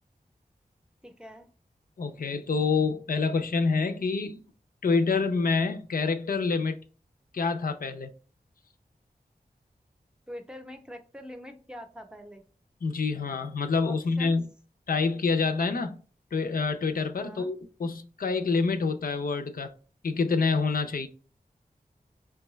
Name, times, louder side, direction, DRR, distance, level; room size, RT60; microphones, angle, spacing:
voice 1, 1.0-1.5 10.3-12.4 13.8-14.4 17.2-17.5, equal, 5° right, 0.7 m, -44 dB
voice 2, 2.0-4.4 4.8-6.8 7.3-8.1 12.8-14.4 14.9-16.0 16.3-19.7 20.0-21.1, left 4 dB, 65° left, 0.5 m, -27 dB
4.6 x 2.3 x 3.0 m
cardioid pair, 45°, 16 cm